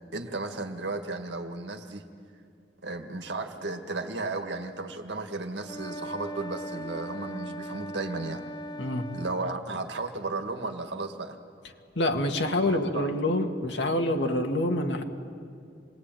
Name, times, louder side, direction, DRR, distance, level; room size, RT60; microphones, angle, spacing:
voice 1, 0.1-2.0 2.8-8.4 9.1-11.4 12.6-13.1, right 3 dB, 85° right, 5 dB, 1.9 m, -34 dB
sound 1, 5.6-9.6, equal, 25° left, 0.9 m, -39 dB
voice 2, 12.0-15.0, left 1 dB, 80° left, 4 dB, 2.0 m, -26 dB
27.5 x 21.0 x 9.2 m, 2.4 s
head